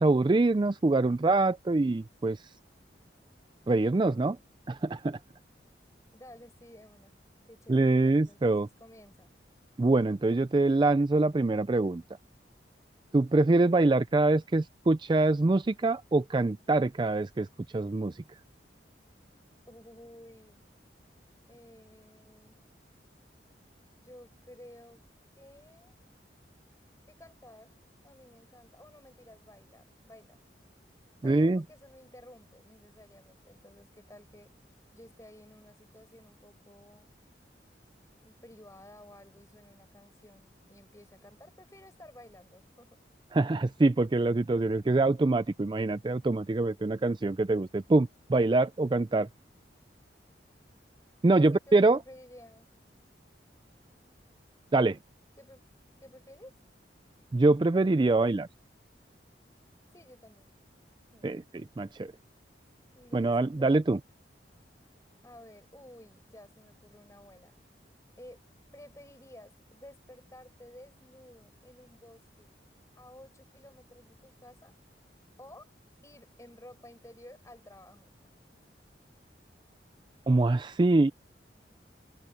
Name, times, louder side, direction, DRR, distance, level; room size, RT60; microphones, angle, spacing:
voice 1, 0.0-2.5 3.7-4.4 4.7-5.2 7.7-8.7 9.8-12.0 13.1-17.5 17.7-18.2 31.2-31.6 43.3-49.3 51.2-52.0 54.7-55.0 57.3-58.5 61.2-62.1 63.1-64.0 80.3-81.1, right 2 dB, 25° right, 0.4 m, -25 dB
voice 2, 6.1-7.1 7.5-9.3 19.7-20.6 21.5-22.6 24.0-25.0 25.4-26.0 27.1-27.7 28.0-30.4 31.2-34.5 34.9-37.1 38.2-43.0 51.3-52.7 55.4-55.7 56.0-56.6 59.9-60.5 61.1-61.3 62.9-63.9 65.2-67.6 68.2-68.4 68.7-72.5 73.0-74.7 75.4-75.7 76.0-78.3, left 1 dB, 15° left, 6.0 m, -53 dB
open air
head